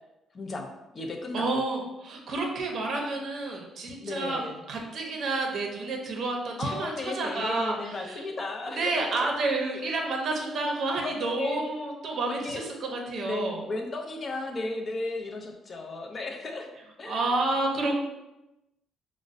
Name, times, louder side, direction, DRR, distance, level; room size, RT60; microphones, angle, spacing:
voice 1, 0.3-1.6 4.0-4.7 6.6-9.3 11.0-11.6 12.2-12.7 13.2-16.7 17.0-17.3, left 2 dB, 30° left, 2 dB, 0.5 m, -35 dB
voice 2, 1.3-4.4 4.7-8.3 8.7-13.7 17.1-18.0, right 2 dB, 50° right, 1 dB, 0.6 m, -30 dB
5.1 x 2.1 x 2.5 m, 0.96 s
cardioid pair, 135°, 0 cm